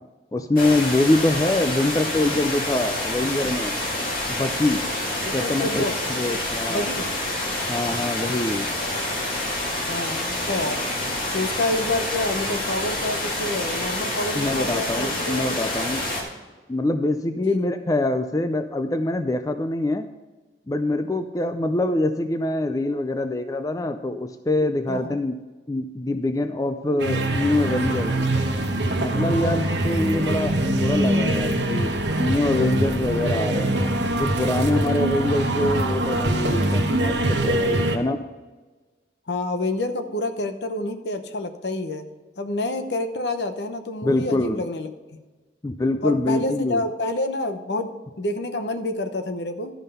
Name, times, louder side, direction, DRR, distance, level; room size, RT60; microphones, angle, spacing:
voice 1, 0.3-3.8 4.3-4.8 5.3-5.8 6.1-6.9 7.7-8.7 14.3-16.0 16.7-20.1 20.7-25.3 25.7-28.1 29.0-33.7 34.2-38.2 44.0-44.6 45.6-46.8, left 2 dB, 20° left, 8 dB, 0.4 m, -24 dB
sound 1, 0.6-16.2, left 1 dB, 50° left, 2.2 m, -27 dB
voice 2, 5.2-6.0 6.7-7.1 9.9-10.8 11.3-15.5 16.1-16.3 17.4-17.6 24.9-25.2 29.4-29.7 39.3-42.0 42.4-45.2 46.0-49.7, left 2 dB, 70° left, 8 dB, 0.9 m, -28 dB
sound 2, 27.0-38.0, right 1 dB, 80° right, 1.1 m, -23 dB
12.5 x 5.5 x 5.5 m, 1.3 s
head